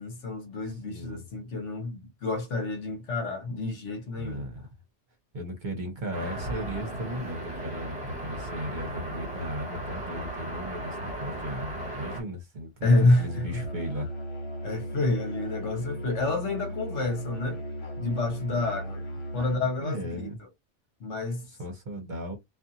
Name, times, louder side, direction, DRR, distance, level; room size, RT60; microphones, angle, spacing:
voice 1, 0.0-4.4 12.8-13.6 14.6-17.6 18.0-19.0 19.3-20.3 21.0-21.4, left 2 dB, 75° left, 1.2 m, -28 dB
voice 2, 0.6-1.2 4.1-4.6 5.3-12.9 13.2-14.1 18.5-18.6 19.4-19.5 19.8-20.4 21.5-22.4, equal, 45° right, 0.8 m, -36 dB
sound 1, 6.1-12.2, right 1 dB, 20° right, 1.4 m, -36 dB
Musical instrument, 12.8-19.7, equal, 30° left, 0.9 m, -36 dB
2.6 x 2.4 x 2.6 m
omnidirectional pair, 1.2 m